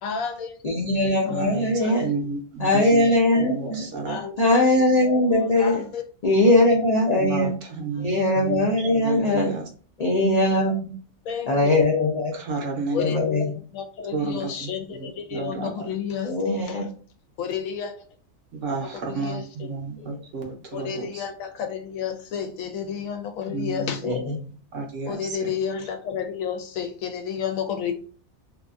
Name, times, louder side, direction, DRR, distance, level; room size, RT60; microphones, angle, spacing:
voice 1, 0.0-0.6 1.3-2.2 4.1-4.3 5.3-6.0 11.2-11.8 12.9-16.9 17.4-18.1 18.8-19.7 20.7-24.2 25.1-27.9, left 7 dB, 80° left, 6 dB, 1.0 m, -31 dB
voice 2, 0.6-2.1 2.6-3.8 4.4-5.8 6.2-7.5 8.0-9.5 10.0-10.9 11.5-12.3 13.0-13.4 16.2-16.9 20.0-20.2 24.0-24.2, left 1 dB, 60° left, -2 dB, 0.4 m, -20 dB
voice 3, 1.3-3.1 3.4-4.2 7.2-9.7 12.3-13.3 14.1-15.9 18.5-21.2 23.5-24.0 24.3-25.5, right 4 dB, 70° right, 1 dB, 1.0 m, -32 dB
2.8 x 2.3 x 2.4 m, 0.40 s
omnidirectional pair, 1.4 m